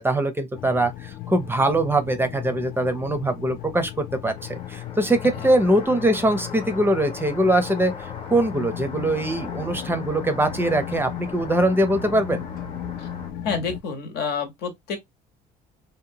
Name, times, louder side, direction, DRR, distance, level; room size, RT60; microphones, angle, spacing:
voice 1, 0.0-3.9 4.2-12.4, right 1 dB, 15° right, 0.5 m, -22 dB
sound 1, 0.5-13.8, left 10 dB, 60° left, 0.4 m, -36 dB
sound 2, 4.3-13.3, left 4 dB, 35° left, 0.8 m, -40 dB
voice 2, 13.4-15.0, left 5 dB, 75° left, 1.0 m, -28 dB
2.8 x 2.2 x 2.6 m
cardioid pair, 110°, 17 cm